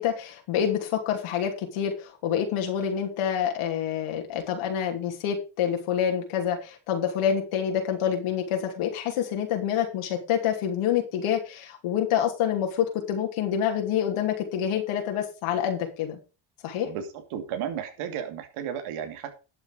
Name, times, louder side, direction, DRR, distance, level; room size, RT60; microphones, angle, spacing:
voice 1, 0.0-16.2 16.6-16.9, left 9 dB, 75° left, 3 dB, 2.9 m, -27 dB
voice 2, 16.8-19.3, right 8 dB, 80° right, 6 dB, 2.7 m, -34 dB
12.0 x 7.2 x 5.0 m, 0.31 s
cardioid pair, 105°, 50 cm